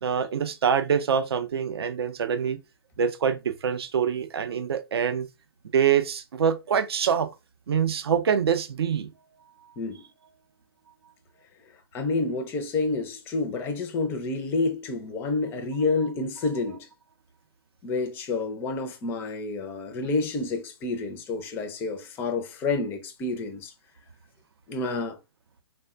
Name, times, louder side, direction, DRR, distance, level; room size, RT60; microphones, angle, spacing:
voice 1, 0.0-2.6 3.0-5.3 5.7-7.3 7.7-9.1, right 7 dB, 75° right, 0.4 m, -25 dB
voice 2, 11.9-16.9 17.8-23.7 24.7-25.2, left 3 dB, 15° left, 0.4 m, -29 dB
3.3 x 2.1 x 2.3 m
hypercardioid pair, 135°, 13 cm